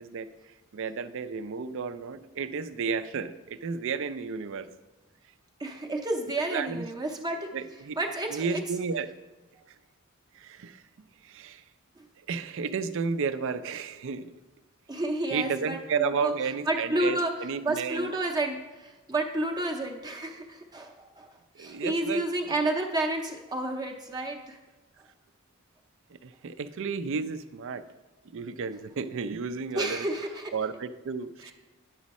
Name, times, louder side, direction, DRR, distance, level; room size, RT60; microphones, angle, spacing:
voice 1, 0.0-4.7 6.5-6.8 7.5-8.0 8.3-9.1 9.7-9.8 10.3-10.8 11.2-11.6 12.2-14.3 15.3-18.1 21.5-22.2 26.1-27.8 28.3-30.1 30.5-31.5, right 5 dB, 60° right, 12 dB, 0.4 m, -32 dB
voice 2, 5.6-7.5 8.0-8.6 14.9-16.3 16.7-17.3 17.6-21.3 21.6-24.6 29.8-30.5 31.4-31.5, right 1 dB, 20° right, 2 dB, 0.6 m, -30 dB
9.8 x 6.2 x 4.1 m, 1.2 s
head